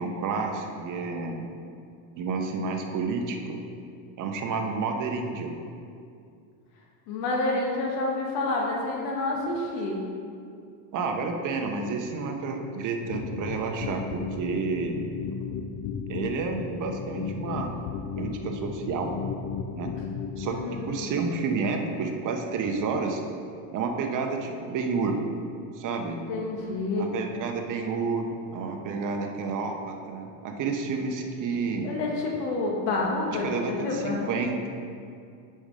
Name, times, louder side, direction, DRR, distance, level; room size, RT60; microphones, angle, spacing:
voice 1, 0.0-1.5 2.2-3.6 4.2-5.5 10.9-15.0 16.1-17.7 18.2-19.1 19.8-19.9 20.4-20.6 20.9-23.2 23.7-25.2 25.7-26.2 26.9-31.9 33.4-34.7, right 4 dB, 40° right, 3 dB, 1.0 m, -30 dB
voice 2, 7.1-10.0 20.4-21.2 26.3-27.1 31.8-34.3, left 2 dB, 80° left, -1 dB, 1.8 m, -29 dB
sound 1, 13.1-21.0, left 6 dB, 50° left, 0.7 m, -35 dB
6.9 x 5.6 x 4.9 m, 2.4 s
supercardioid pair, 115°, 48 cm